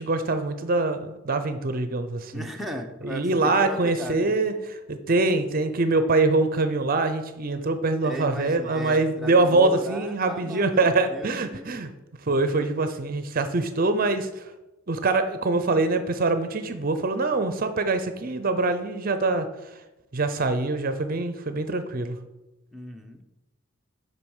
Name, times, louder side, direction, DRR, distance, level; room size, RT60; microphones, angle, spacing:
voice 1, 0.0-2.4 3.0-11.9 12.2-14.5 14.9-19.8 20.1-22.2, right 3 dB, 45° right, 9 dB, 0.6 m, -24 dB
voice 2, 2.3-4.4 8.0-11.8 22.7-23.2, equal, ahead, 1 dB, 0.9 m, -36 dB
7.9 x 5.5 x 7.2 m, 1.0 s
head